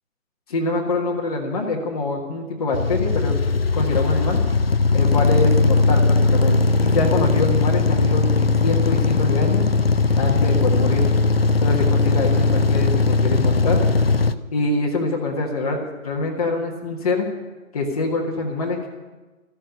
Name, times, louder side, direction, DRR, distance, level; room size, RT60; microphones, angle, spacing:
voice 1, 0.5-3.5 3.7-4.4 4.9-9.6 10.2-11.1 11.6-13.8 14.5-17.3 17.7-18.9, left 2 dB, 25° left, -1 dB, 1.7 m, -24 dB
sound 1, 2.7-14.3, left 3 dB, 45° left, 0.6 m, -19 dB
14.0 x 7.8 x 9.7 m, 1.2 s
figure-of-eight pair, 150°, 41 cm